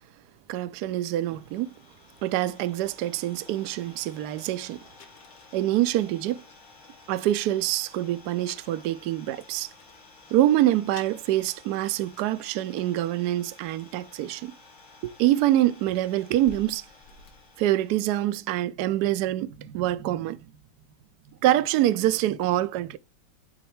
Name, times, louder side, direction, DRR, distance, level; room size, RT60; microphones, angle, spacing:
voice 1, 0.5-1.7 2.2-4.8 5.5-6.4 7.1-9.7 10.3-14.6 15.0-16.9 17.6-20.5 21.4-23.0, right 14 dB, 70° right, 1.0 m, -25 dB
Idling, 0.7-18.5, left 3 dB, 90° left, 2.4 m, -53 dB
sound 1, 1.7-1.8 2.3-2.5 3.2-3.3 3.5-3.7 4.1-4.2 4.4-4.5 5.0-6.7 7.1-8.0 8.4-10.1 10.6-10.7 10.9-12.9 13.3-13.6 14.7-14.8 15.2-18.2, left 4 dB, 65° left, 1.8 m, -53 dB
11.0 x 4.1 x 3.2 m
omnidirectional pair, 2.1 m